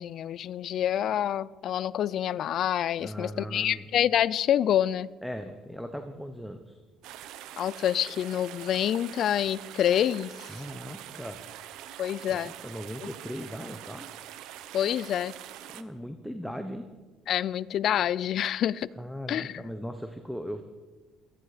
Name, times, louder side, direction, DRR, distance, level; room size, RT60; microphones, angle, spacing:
voice 1, 0.0-5.1 7.6-10.5 12.0-12.5 14.7-15.3 17.3-18.9 19.3-19.6, left 10 dB, 55° left, 20 dB, 0.4 m, -27 dB
voice 2, 3.0-3.9 5.2-6.8 10.5-11.4 12.3-14.1 15.7-16.9 19.0-20.6, equal, ahead, 7 dB, 0.9 m, -38 dB
sound 1, 7.0-15.8, right 12 dB, 75° right, 0.8 m, -44 dB
18.0 x 13.5 x 5.0 m, 1.3 s
cardioid pair, 135°, 0 cm